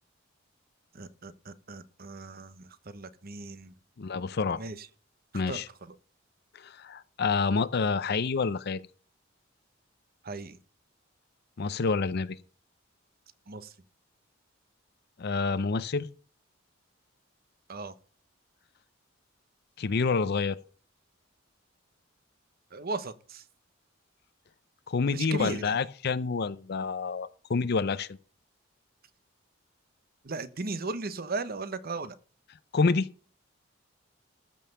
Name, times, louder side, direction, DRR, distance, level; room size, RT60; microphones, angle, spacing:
voice 1, 0.9-3.7 4.6-4.9 5.3-6.0 10.2-10.6 13.5-13.7 17.7-17.9 22.7-23.4 25.1-25.7 30.2-32.1, right 3 dB, 50° right, 1.0 m, -37 dB
voice 2, 4.0-4.6 5.3-5.7 6.5-8.8 11.6-12.4 15.2-16.1 19.8-20.6 24.9-28.1 32.7-33.1, left 4 dB, 55° left, 0.5 m, -28 dB
14.0 x 5.5 x 6.9 m
head